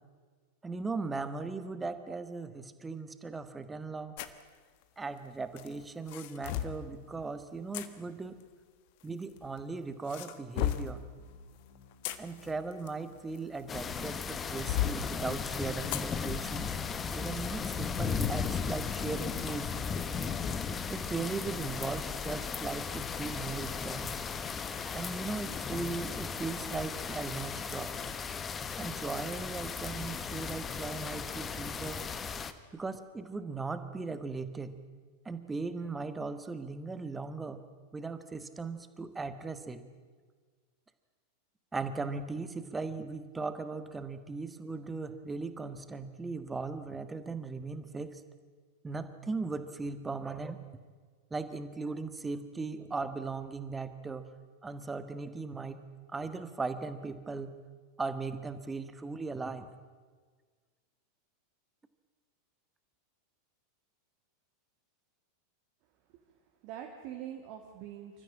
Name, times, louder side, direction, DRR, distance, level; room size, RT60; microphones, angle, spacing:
voice 1, 0.6-4.1 5.0-8.4 9.0-11.0 12.2-16.8 17.1-19.8 20.9-24.2 24.9-27.9 28.8-32.0 32.7-34.8 35.2-37.6 37.9-39.8 41.7-48.2 48.8-50.6 51.3-54.3 54.6-57.6 58.0-59.7, right 4 dB, 10° right, 11 dB, 1.5 m, -38 dB
sound 1, 4.2-4.4 5.6-6.8 7.7-7.9 9.0-9.6 10.1-11.0 11.8-13.8 14.3-15.0 15.9-16.1 16.6-16.7 17.2-17.4, left 12 dB, 50° left, 1.3 m, -35 dB
sound 2, 10.9-17.8, left 5 dB, 70° left, 4.1 m, -57 dB
sound 3, 13.7-32.5, left 6 dB, 20° left, 1.2 m, -36 dB
voice 2, 66.3-68.2, right 10 dB, 45° right, 1 dB, 2.2 m, -44 dB
27.0 x 14.0 x 8.8 m, 1.5 s
figure-of-eight pair, 90°, 0 cm